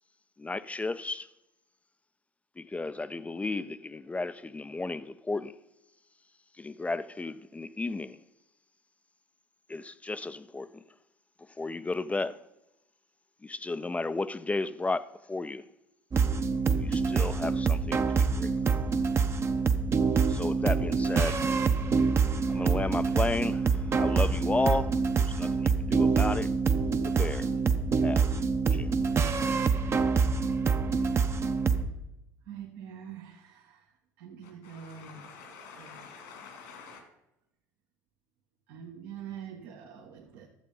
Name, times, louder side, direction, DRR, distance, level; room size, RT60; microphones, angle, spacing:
voice 1, 0.4-1.3 2.6-5.5 6.6-8.2 9.7-10.7 11.6-12.4 13.4-15.6 16.8-18.6 18.9-19.0 20.3-21.5 22.5-26.5 27.0-27.5 28.0-28.4 28.7-28.9, left 3 dB, 15° left, 0.5 m, -33 dB
sound 1, 16.1-31.8, right 5 dB, 30° right, 0.8 m, -26 dB
voice 2, 32.5-33.3 34.2-35.2 35.8-35.9 38.7-40.5, right 8 dB, 70° right, 1.4 m, -44 dB
voice 3, 34.4-37.0, left 5 dB, 80° left, 2.7 m, -48 dB
11.5 x 7.5 x 5.4 m
hypercardioid pair, 80°, 9 cm